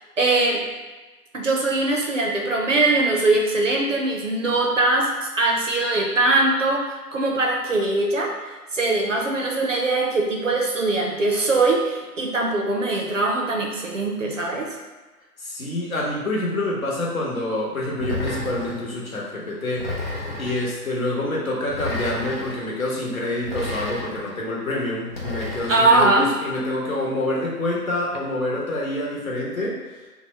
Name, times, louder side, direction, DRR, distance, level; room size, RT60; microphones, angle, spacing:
voice 1, 0.2-0.6 1.3-5.1 5.4-6.8 7.1-8.3 8.7-14.7 25.7-26.3, right 2 dB, 50° right, 0 dB, 0.6 m, -21 dB
voice 2, 15.4-19.9 20.4-29.8, left 1 dB, 55° left, -4 dB, 1.0 m, -27 dB
sound 1, 18.0-18.9 19.8-20.7 21.7-22.6 23.4-24.3 25.1-26.1, left 2 dB, 40° left, 0.7 m, -31 dB
2.8 x 2.1 x 4.0 m, 1.2 s
hypercardioid pair, 170°, 48 cm